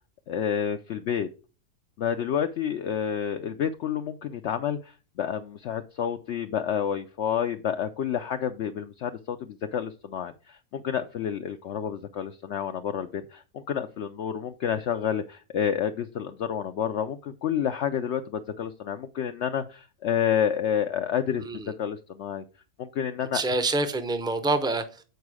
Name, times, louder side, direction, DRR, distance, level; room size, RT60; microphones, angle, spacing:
voice 1, 0.3-1.3 2.0-22.4 22.8-23.4, left 8 dB, 65° left, 0.8 m, -29 dB
voice 2, 21.4-21.7 23.3-25.0, right 2 dB, 5° right, 0.5 m, -27 dB
8.1 x 4.8 x 4.8 m
omnidirectional pair, 1.5 m